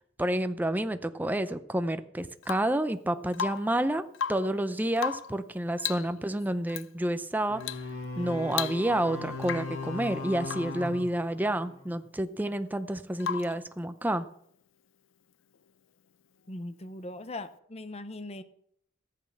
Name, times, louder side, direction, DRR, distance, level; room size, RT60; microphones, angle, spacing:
voice 1, 0.2-4.0 4.3-7.6 8.2-14.3, right 1 dB, 10° right, 10 dB, 0.6 m, -29 dB
Rain / Water tap faucet / Drip, 2.4-2.8 3.3-3.8 4.1-4.6 5.0-5.4 5.8-6.1 6.7-6.9 7.6-7.9 8.2-8.3 8.5-9.1 9.4-9.8 10.4-10.8 13.2-13.6 15.5-15.6, left 8 dB, 70° left, 0.5 m, -35 dB
sound 1, 7.5-12.0, left 3 dB, 85° left, 2.2 m, -38 dB
voice 2, 16.5-18.4, left 2 dB, 30° left, 12 dB, 0.8 m, -40 dB
14.0 x 8.6 x 5.9 m, 0.68 s
head